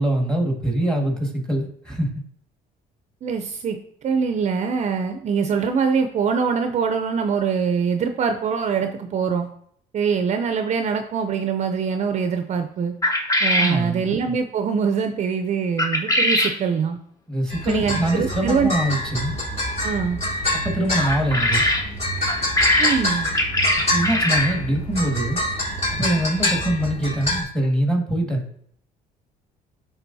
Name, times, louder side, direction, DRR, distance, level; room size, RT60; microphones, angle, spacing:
voice 1, 0.0-2.1 13.6-14.0 17.3-19.4 20.6-21.6 23.9-25.4 25.9-28.4, right 1 dB, 5° left, 1 dB, 1.7 m, -23 dB
voice 2, 3.2-9.5 9.9-12.9 13.4-17.0 17.7-18.7 19.8-20.2 22.8-23.3, right 6 dB, 45° right, 6 dB, 0.5 m, -23 dB
sound 1, 13.0-13.8 15.8-16.6 21.0-21.9 22.3-24.6, left 1 dB, 20° left, 0.9 m, -21 dB
sound 2, 17.5-27.4, left 1 dB, 35° left, 2.4 m, -26 dB
10.5 x 3.7 x 2.7 m, 0.64 s
cardioid pair, 110°, 17 cm